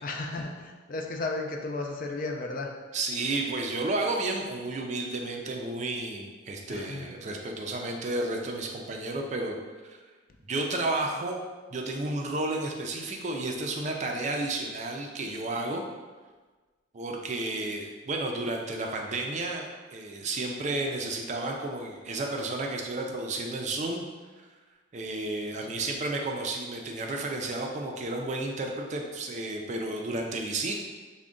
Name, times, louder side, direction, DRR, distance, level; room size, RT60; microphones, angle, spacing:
voice 1, 0.0-2.7 6.7-7.1 25.7-25.9, left 2 dB, 45° left, 2 dB, 0.4 m, -34 dB
voice 2, 2.9-9.6 9.8-10.0 10.5-11.4 11.7-15.9 16.9-19.6 19.9-24.0 24.9-30.8, right 2 dB, 40° right, 1 dB, 0.4 m, -32 dB
3.6 x 2.1 x 3.6 m, 1.3 s
head